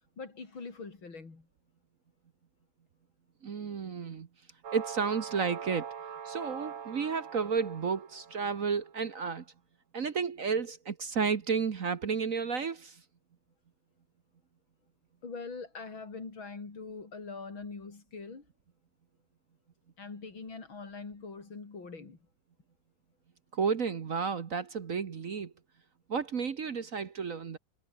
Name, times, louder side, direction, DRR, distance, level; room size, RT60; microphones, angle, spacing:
voice 1, 0.2-1.4 15.2-18.4 20.0-22.2, left 4 dB, 80° left, 4.7 m, -43 dB
voice 2, 3.4-4.3 4.7-5.9 6.2-9.4 9.9-13.0 23.5-25.5 26.1-27.6, right 5 dB, 45° right, 1.4 m, -32 dB
sound 1, 4.6-8.7, right 7 dB, 85° right, 2.7 m, -43 dB
omnidirectional pair, 2.2 m